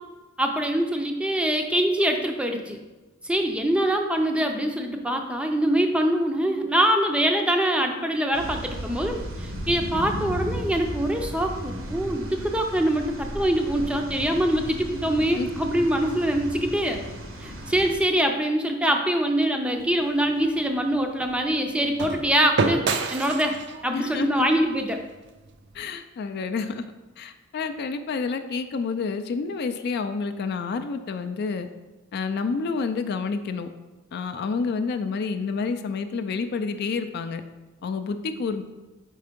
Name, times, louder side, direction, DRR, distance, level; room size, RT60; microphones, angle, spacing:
voice 1, 0.4-2.8 3.2-17.0 17.4-22.8 23.1-23.6 23.8-25.0, right 1 dB, 5° right, 4 dB, 0.5 m, -24 dB
sound 1, 8.3-17.9, equal, 80° right, 1.0 m, -35 dB
sound 2, 19.8-25.9, right 4 dB, 60° right, 0.5 m, -32 dB
voice 2, 23.9-24.6 25.7-26.8 27.2-31.7 32.1-33.7 34.1-37.4 37.8-38.6, left 4 dB, 55° left, 9 dB, 0.4 m, -29 dB
4.6 x 4.2 x 5.1 m, 1.1 s
head